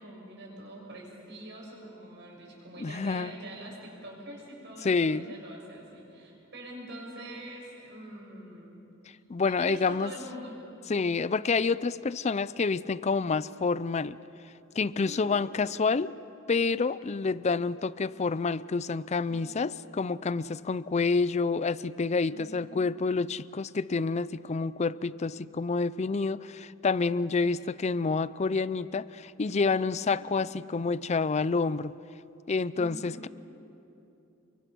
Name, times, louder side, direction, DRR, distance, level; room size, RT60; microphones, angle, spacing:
voice 1, 0.0-8.8 9.4-10.6 15.0-15.6 19.3-19.8 22.3-22.9 27.4-27.6 29.8-30.3 32.7-33.3, right 1 dB, 60° right, -2 dB, 7.0 m, -45 dB
voice 2, 2.8-3.3 4.8-5.4 9.3-10.1 10.9-14.2 14.8-16.1 16.5-31.9 32.5-33.3, left 4 dB, 35° left, 17 dB, 0.4 m, -28 dB
29.5 x 24.0 x 6.2 m, 2.9 s
head